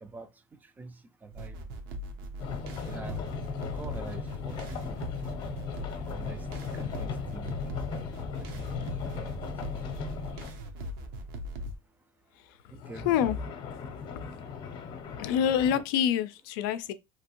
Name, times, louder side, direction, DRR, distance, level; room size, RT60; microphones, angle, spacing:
voice 1, 0.6-1.6 2.8-3.2 3.7-5.1 6.1-7.6 8.0-8.1 8.4-9.8 12.7-13.1, right 4 dB, 15° right, 0.3 m, -46 dB
sound 1, 1.3-11.8, equal, 75° right, 0.7 m, -40 dB
sound 2, 2.4-10.6 12.8-15.8, left 5 dB, 40° left, 0.7 m, -37 dB
voice 2, 13.1-13.4 15.2-16.9, left 9 dB, 75° left, 0.4 m, -26 dB
2.8 x 2.5 x 2.9 m
supercardioid pair, 120°, 12 cm